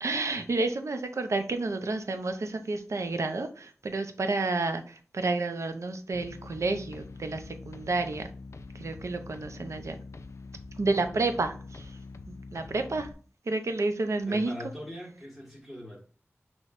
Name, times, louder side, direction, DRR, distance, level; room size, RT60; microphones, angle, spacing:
voice 1, 0.0-8.3 8.7-10.0 10.8-12.0 12.3-13.1 13.5-14.5, right 3 dB, 85° right, 0.6 m, -30 dB
sound 1, 6.1-13.1, left 3 dB, 75° left, 0.4 m, -45 dB
voice 2, 14.3-16.0, left 1 dB, ahead, 1.5 m, -42 dB
6.1 x 3.1 x 2.5 m
wide cardioid pair, 65°, 5 cm